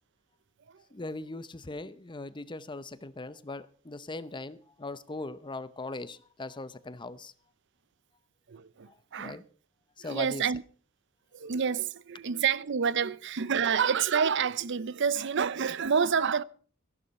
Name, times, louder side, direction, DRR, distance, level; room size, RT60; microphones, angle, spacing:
voice 1, 0.9-7.3 8.9-9.4 10.0-10.5 13.0-13.1 13.5-13.6, left 2 dB, 25° left, 0.7 m, -40 dB
voice 2, 8.5-9.4 10.0-10.6 11.3-16.4, right 6 dB, 60° right, 0.6 m, -28 dB
15.5 x 11.5 x 5.4 m
head